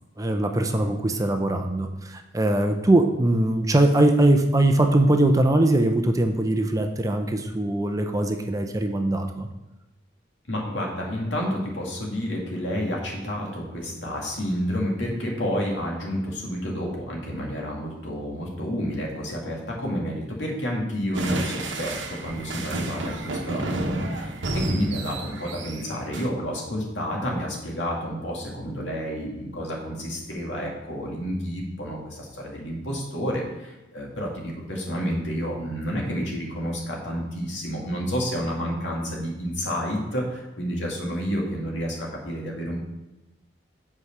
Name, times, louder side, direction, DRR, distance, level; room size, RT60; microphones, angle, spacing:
voice 1, 0.2-9.5, right 1 dB, 20° right, 5 dB, 0.6 m, -21 dB
voice 2, 10.5-42.8, equal, 70° left, -1 dB, 2.2 m, -30 dB
sound 1, 21.1-26.3, right 1 dB, 75° right, 1.0 m, -30 dB
8.2 x 4.9 x 6.0 m, 1.0 s
head